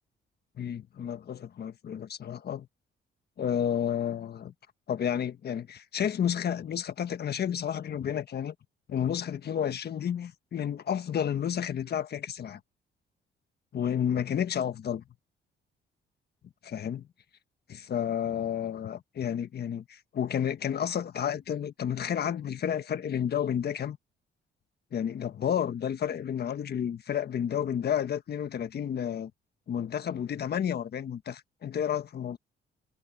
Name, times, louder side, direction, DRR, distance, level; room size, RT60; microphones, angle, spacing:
voice 1, 0.6-2.7 3.4-4.5 4.9-8.5 8.9-12.6 13.7-15.0 16.6-17.0 17.7-24.0 24.9-29.3 29.7-32.4, left 9 dB, 55° left, 1.4 m, -31 dB
cardioid pair, 90°, 20 cm